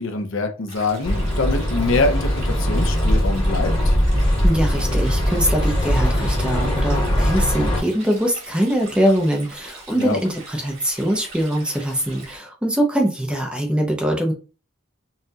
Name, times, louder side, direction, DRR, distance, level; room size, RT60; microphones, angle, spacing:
voice 1, 0.0-3.9 10.0-10.2, left 3 dB, 60° left, 6 dB, 0.7 m, -24 dB
Stream, 0.7-12.4, right 3 dB, 65° right, 2.2 m, -42 dB
sound 1, 1.0-7.8, equal, 25° left, 1.2 m, -20 dB
voice 2, 4.4-14.3, equal, 5° right, 1 dB, 0.7 m, -22 dB
5.6 x 2.4 x 2.8 m, 0.34 s
head